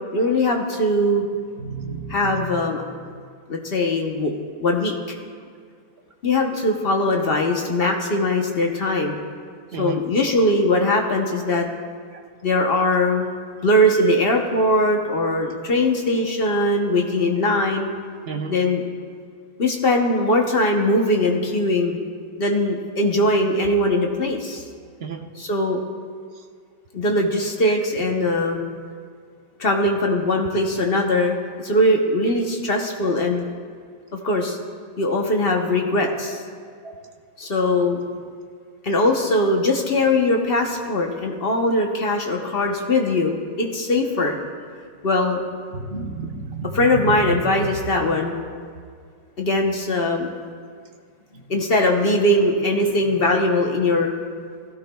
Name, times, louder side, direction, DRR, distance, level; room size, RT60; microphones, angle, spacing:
voice 1, 0.1-1.2 2.1-2.8 3.5-4.3 4.6-4.9 6.2-9.2 9.8-11.7 12.4-13.3 13.6-17.9 18.5-18.8 19.6-22.0 22.4-24.6 25.4-25.8 26.9-28.6 29.6-33.4 34.2-34.6 35.0-36.4 37.4-38.0 38.8-44.3 45.0-45.4 46.7-48.4 49.4-50.3 51.3-54.1, left 1 dB, 45° left, 2 dB, 0.8 m, -21 dB
voice 2, 1.6-2.5 9.7-10.0 18.3-18.6 25.0-25.2 36.8-36.9 45.7-47.7, right 4 dB, 55° right, 3 dB, 0.7 m, -30 dB
16.5 x 15.0 x 2.3 m, 2.1 s
omnidirectional pair, 1.9 m